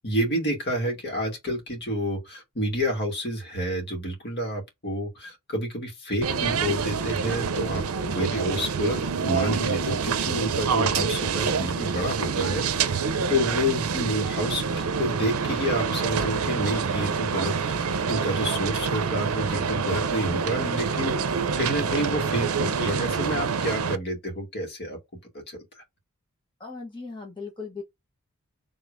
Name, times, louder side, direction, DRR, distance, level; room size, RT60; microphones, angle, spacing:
voice 1, 0.0-14.6 15.0-25.0 25.5-25.6, equal, 50° left, 2.4 m, -29 dB
sound 1, 6.2-24.0, right 5 dB, 70° right, 0.6 m, -27 dB
voice 2, 26.6-27.8, left 4 dB, 20° left, 1.2 m, -37 dB
5.3 x 3.7 x 2.6 m
head